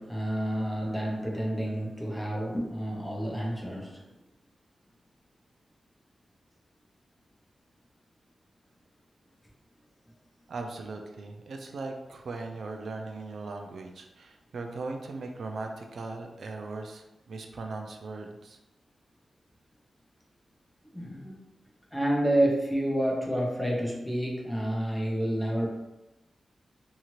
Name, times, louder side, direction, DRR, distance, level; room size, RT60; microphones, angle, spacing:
voice 1, 0.0-4.1 20.8-21.4 21.9-25.7, right 1 dB, 5° left, -2 dB, 0.6 m, -29 dB
voice 2, 10.5-18.6, right 3 dB, 70° right, 3 dB, 0.3 m, -39 dB
2.7 x 2.4 x 3.0 m, 0.95 s
wide cardioid pair, 155°, 0 cm